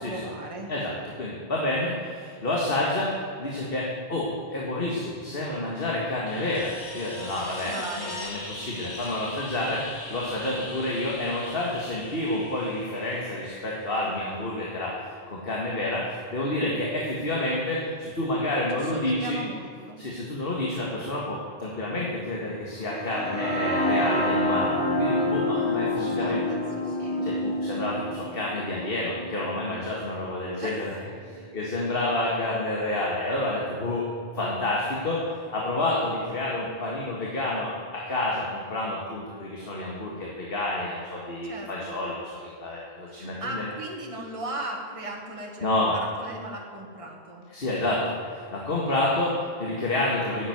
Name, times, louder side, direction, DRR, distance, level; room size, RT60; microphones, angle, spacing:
voice 1, 0.0-0.7 7.4-8.3 18.7-20.0 25.5-27.3 30.6-30.8 41.4-41.9 43.1-47.5, right 1 dB, 30° right, 0 dB, 1.7 m, -37 dB
voice 2, 0.7-3.1 3.4-9.8 10.1-19.4 20.0-26.4 27.2-30.9 31.2-34.0 34.3-35.2 35.5-42.3 42.6-43.6 45.6-46.0 47.5-50.5, left 1 dB, 65° left, -3 dB, 2.0 m, -29 dB
sound 1, 6.3-14.9 17.3-17.4, left 2 dB, 90° left, 2.1 m, -41 dB
sound 2, 22.8-30.7, left 1 dB, 50° right, 2.4 m, -28 dB
10.0 x 8.4 x 9.5 m, 2.3 s
omnidirectional pair, 1.1 m